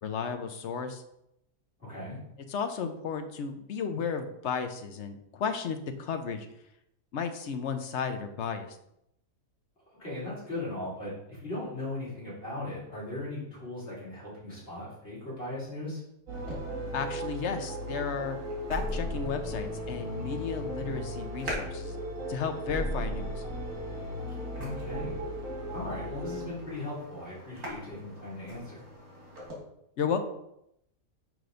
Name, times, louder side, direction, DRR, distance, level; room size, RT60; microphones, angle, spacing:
voice 1, 0.0-1.0 2.5-6.5 7.1-8.8 16.9-18.4 18.7-22.0 22.3-23.4 30.0-30.2, left 6 dB, 60° left, 7 dB, 0.9 m, -33 dB
voice 2, 1.8-2.2 10.0-16.0 24.3-25.2 25.7-28.8, left 2 dB, 40° left, -9 dB, 3.0 m, -38 dB
sound 1, 16.3-26.5, equal, 65° right, 2.2 m, -36 dB
sound 2, 16.3-29.6, equal, 90° right, 2.5 m, -46 dB
6.2 x 5.0 x 3.9 m, 0.79 s
omnidirectional pair, 1.5 m